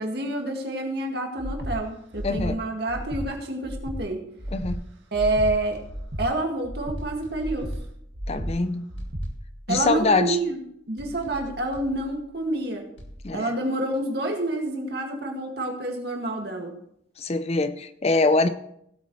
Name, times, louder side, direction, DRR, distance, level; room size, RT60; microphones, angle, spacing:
voice 1, 0.0-4.2 5.1-5.8 6.2-7.7 9.7-10.6 10.9-12.9 13.3-16.8, right 2 dB, 55° right, 2 dB, 2.0 m, -28 dB
Breathing, 1.4-1.7 2.1-2.5 2.9-3.2 3.6-4.0 4.4-4.7 5.1-5.5 5.9-6.2 6.6-7.0 7.4-7.7 8.1-8.5 8.9-9.2, equal, 80° right, 1.9 m, -33 dB
voice 2, 2.2-2.6 4.5-4.8 8.3-8.9 9.7-10.4 13.2-13.5 17.2-18.5, left 3 dB, 35° left, 11 dB, 0.5 m, -23 dB
sound 1, 5.2-6.5 7.0-8.5 9.0-10.5 11.0-12.5 13.0-13.2, equal, 80° left, 2.0 m, -45 dB
17.0 x 8.3 x 3.2 m, 0.73 s
head